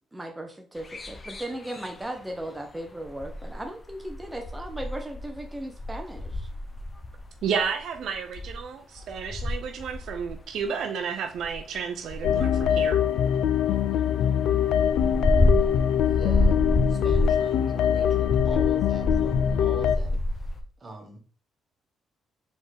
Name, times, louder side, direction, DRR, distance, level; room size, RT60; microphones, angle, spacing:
voice 1, 0.1-6.5, right 1 dB, 10° right, 3 dB, 0.6 m, -37 dB
sound 1, 0.8-2.4 2.7-8.6 9.0-10.6 11.3-13.7 14.0-14.1 14.3-17.5 17.8-20.6, left 1 dB, 30° left, 0.7 m, -29 dB
voice 2, 7.4-13.0, right 6 dB, 75° right, 6 dB, 0.4 m, -31 dB
sound 2, 12.2-20.0, left 9 dB, 80° left, 0.3 m, -23 dB
voice 3, 16.0-21.2, right 2 dB, 35° right, 1 dB, 1.3 m, -42 dB
4.3 x 3.5 x 3.3 m, 0.43 s
cardioid pair, 90°, 0 cm